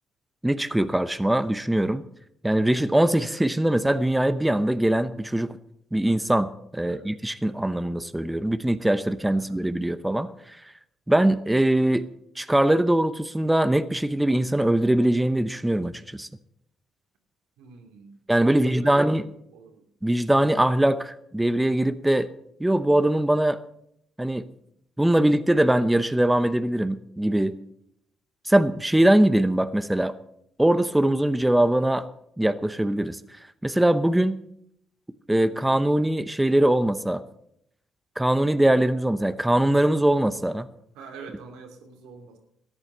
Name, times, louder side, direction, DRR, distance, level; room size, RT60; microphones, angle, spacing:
voice 1, 0.4-2.0 2.4-5.6 5.9-10.6 11.1-12.1 12.4-16.3 18.3-19.2 20.0-22.3 22.6-23.6 24.2-24.4 25.0-27.6 28.4-30.1 30.6-32.1 32.4-33.2 33.6-34.4 35.3-37.2 38.2-40.7, right 1 dB, 10° right, 12 dB, 0.8 m, -22 dB
voice 2, 17.6-18.1 18.5-19.2 19.5-19.9 40.9-42.4, right 5 dB, 85° right, 4 dB, 2.3 m, -44 dB
14.0 x 8.8 x 6.6 m, 0.74 s
supercardioid pair, 70°, 0 cm